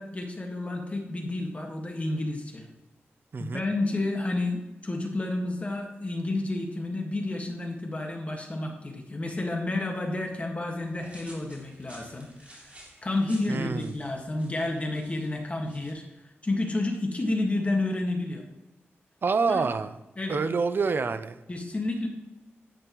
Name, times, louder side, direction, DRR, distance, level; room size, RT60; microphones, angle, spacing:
voice 1, 0.0-2.6 3.4-12.7 13.0-16.0 16.4-18.4 19.5-19.6 20.2-20.4 21.5-22.1, left 2 dB, 30° left, 2 dB, 1.7 m, -30 dB
voice 2, 3.3-3.6 13.5-13.9 19.2-20.0 20.3-21.4, right 4 dB, 50° right, 12 dB, 0.6 m, -27 dB
sound 1, 10.8-15.9, right 1 dB, 30° right, 3.2 m, -53 dB
10.0 x 8.6 x 3.0 m, 1.0 s
wide cardioid pair, 95°, 4 cm